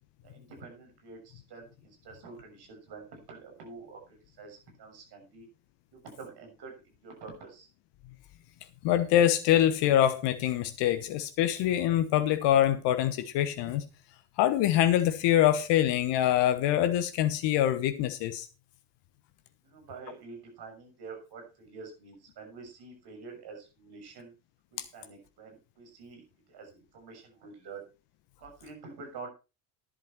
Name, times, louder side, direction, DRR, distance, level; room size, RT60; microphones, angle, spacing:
voice 1, 0.2-5.5 5.9-6.7 7.0-7.7 19.6-24.3 24.7-27.8 28.4-29.3, right 4 dB, 50° right, 6.4 m, -47 dB
voice 2, 8.8-13.8 14.4-18.5, left 11 dB, 60° left, 1.2 m, -25 dB
11.0 x 10.5 x 4.4 m
figure-of-eight pair, 55°, 48 cm